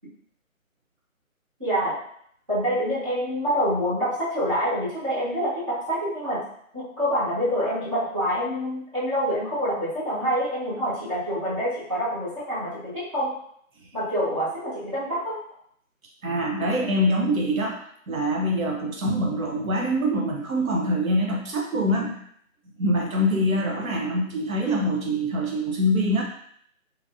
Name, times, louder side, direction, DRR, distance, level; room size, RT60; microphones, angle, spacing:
voice 1, 1.6-2.0 2.5-6.4 6.7-13.3 13.9-15.4, equal, 25° right, -12 dB, 0.9 m, -26 dB
voice 2, 16.2-17.8 18.1-22.2 22.8-26.2, equal, 75° right, 0 dB, 0.7 m, -24 dB
3.1 x 2.5 x 2.4 m, 0.66 s
figure-of-eight pair, 165°, 42 cm